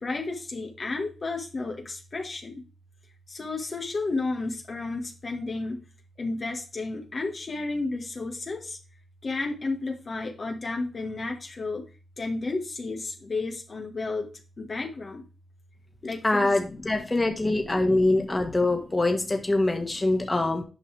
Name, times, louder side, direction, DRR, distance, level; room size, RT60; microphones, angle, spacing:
voice 1, 0.0-2.6 3.3-5.8 6.2-8.8 9.2-11.8 12.2-14.3 14.6-15.2 16.0-17.0 17.4-18.3, left 3 dB, 50° left, 3 dB, 1.9 m, -32 dB
voice 2, 16.2-20.6, left 2 dB, 25° left, 3 dB, 2.0 m, -24 dB
9.8 x 5.6 x 3.4 m, 0.33 s
cardioid pair, 50°, 0 cm